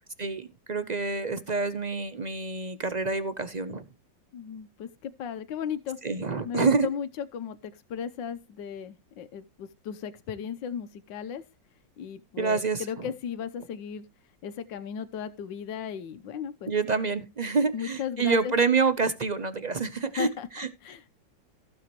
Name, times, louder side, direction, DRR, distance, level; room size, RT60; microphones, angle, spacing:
voice 1, 0.2-3.8 6.0-6.9 12.4-13.1 16.7-20.3 20.5-20.7, right 4 dB, 60° right, 0.4 m, -27 dB
voice 2, 4.3-6.0 6.4-11.4 12.0-14.1 14.4-16.7 17.7-18.5 20.2-20.5 20.8-21.1, left 8 dB, 80° left, 1.6 m, -36 dB
15.5 x 7.1 x 3.0 m
omnidirectional pair, 2.0 m